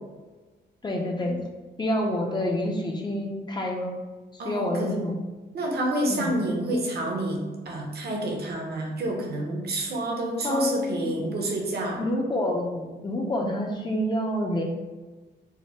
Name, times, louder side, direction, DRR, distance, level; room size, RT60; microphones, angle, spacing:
voice 1, 0.8-1.4 1.8-3.9 4.3-5.2 6.1-6.4 10.4-11.1 12.0-14.6, left 1 dB, 25° left, 0 dB, 0.6 m, -27 dB
voice 2, 4.4-4.9 5.5-12.0, right 1 dB, 60° right, 0 dB, 0.9 m, -28 dB
4.9 x 2.1 x 4.1 m, 1.3 s
cardioid pair, 115°, 19 cm